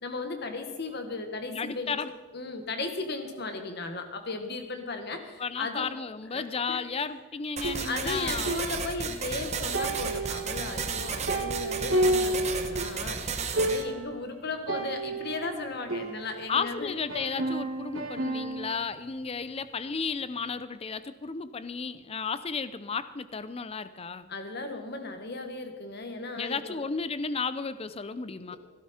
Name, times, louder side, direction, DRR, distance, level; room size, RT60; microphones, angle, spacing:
voice 1, 0.0-2.0 2.3-5.9 6.3-6.8 7.8-16.9 24.3-26.8 28.5-28.6, left 3 dB, 55° left, 6 dB, 1.5 m, -36 dB
voice 2, 1.5-2.1 5.4-8.5 16.5-24.3 26.3-28.6, left 5 dB, 30° left, 14 dB, 0.5 m, -33 dB
sound 1, 7.6-13.8, right 5 dB, 35° right, 1.0 m, -33 dB
sound 2, 7.6-9.4 9.7-13.0 13.3-13.4 13.6-14.2 14.7-16.7 17.1-18.8, right 1 dB, 80° right, 2.4 m, -31 dB
16.0 x 12.5 x 4.3 m, 1.3 s
head